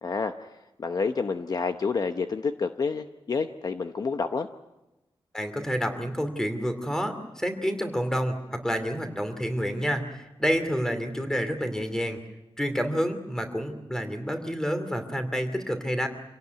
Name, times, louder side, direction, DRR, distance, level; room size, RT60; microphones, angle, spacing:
voice 1, 0.0-4.5, left 4 dB, 45° left, 7 dB, 0.9 m, -29 dB
voice 2, 5.3-12.2 12.6-16.1, equal, 5° left, 7 dB, 2.6 m, -29 dB
26.5 x 17.5 x 9.3 m, 1.0 s
wide cardioid pair, 160°, 9 cm